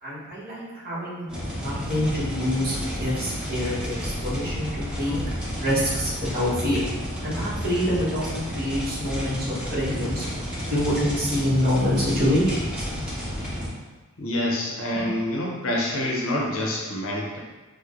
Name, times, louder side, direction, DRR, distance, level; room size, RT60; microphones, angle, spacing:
voice 1, 0.0-4.7 5.0-5.2 5.6-6.8 7.2-10.2 10.7-12.9 14.9-15.1, left 1 dB, 45° right, -9 dB, 1.0 m, -26 dB
sound 1, 1.3-13.7, equal, 5° right, 0.5 m, -31 dB
voice 2, 14.2-17.4, left 1 dB, 65° left, -2 dB, 0.6 m, -27 dB
4.4 x 2.1 x 2.4 m, 1.2 s
head